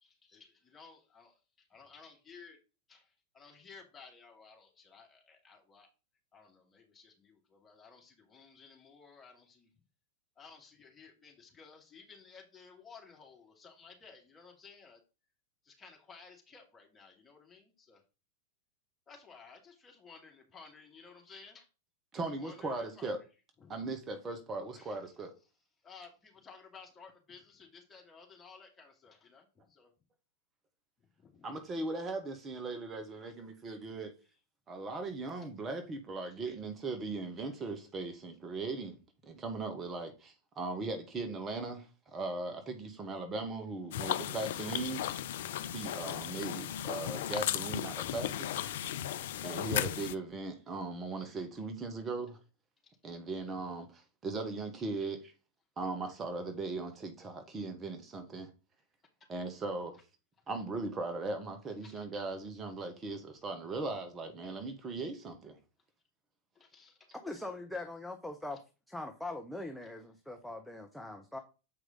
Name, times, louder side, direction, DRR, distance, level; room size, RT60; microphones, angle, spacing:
voice 1, 0.0-2.6 2.9-5.9 6.3-9.7 10.4-15.0 15.6-18.0 19.1-21.7 22.4-23.1 23.6-23.8 24.7-25.0 25.8-29.9 31.0-31.7 51.1-51.2 52.8-52.9 61.8-62.0 66.6-67.1 68.5-68.6, left 5 dB, 20° left, 2.4 m, -56 dB
voice 2, 22.1-23.2 23.7-25.3 31.4-34.1 34.7-45.0 45.7-48.7 49.4-52.4 53.0-55.3 55.8-58.5 59.3-60.0 60.5-65.6, right 3 dB, 20° right, 1.2 m, -39 dB
sound 1, 43.9-50.1, left 11 dB, 55° left, 0.4 m, -35 dB
voice 3, 67.1-68.6 68.9-71.4, left 2 dB, ahead, 0.8 m, -41 dB
7.6 x 4.8 x 3.8 m
figure-of-eight pair, 90°, 0 cm